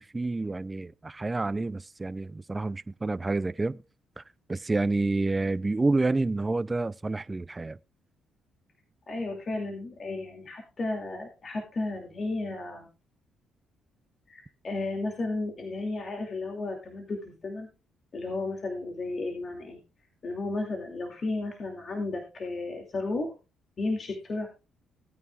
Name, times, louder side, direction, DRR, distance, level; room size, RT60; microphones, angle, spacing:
voice 1, 0.0-3.8 4.2-4.3 4.5-7.8, right 3 dB, 20° right, 0.4 m, -29 dB
voice 2, 9.1-12.9 14.3-17.7 18.1-19.8 20.2-23.3 23.8-24.5, left 2 dB, 45° left, 2.6 m, -33 dB
17.5 x 9.4 x 2.4 m
cardioid pair, 90°, 0 cm